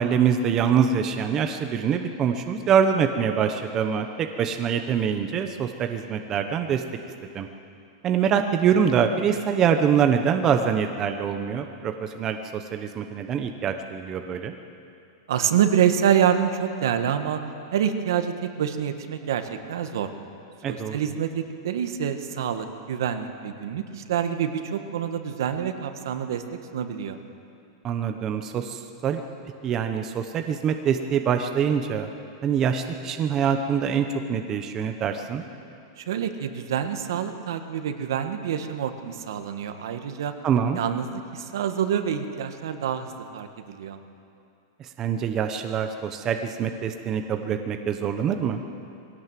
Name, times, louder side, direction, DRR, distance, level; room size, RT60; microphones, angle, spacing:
voice 1, 0.0-6.8 7.3-7.5 8.0-14.5 20.6-21.0 27.8-29.2 29.6-32.1 32.4-35.4 40.4-40.8 44.8-48.6, right 7 dB, 20° right, 6 dB, 0.8 m, -24 dB
voice 2, 15.3-17.4 17.7-20.1 20.7-26.4 26.7-27.2 36.0-40.3 40.7-44.0, right 9 dB, 75° right, 7 dB, 1.6 m, -26 dB
21.0 x 17.0 x 7.6 m, 2.6 s
supercardioid pair, 170°, 2 cm